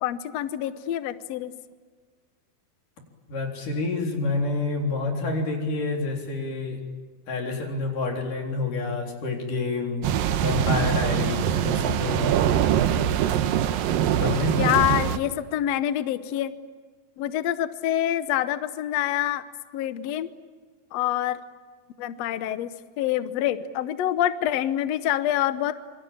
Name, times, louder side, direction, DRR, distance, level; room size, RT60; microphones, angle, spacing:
voice 1, 0.0-1.5 14.6-16.5 17.2-19.4 19.7-20.3 20.9-21.4 22.0-22.7 23.0-25.8, left 12 dB, 80° left, 12 dB, 1.5 m, -26 dB
voice 2, 3.3-6.8 7.3-10.1 10.4-12.4 14.2-14.6, left 3 dB, 60° left, 2 dB, 5.3 m, -28 dB
sound 1, 10.0-15.2, right 10 dB, 75° right, 2.6 m, -23 dB
26.5 x 24.5 x 8.9 m, 1.5 s
omnidirectional pair, 4.3 m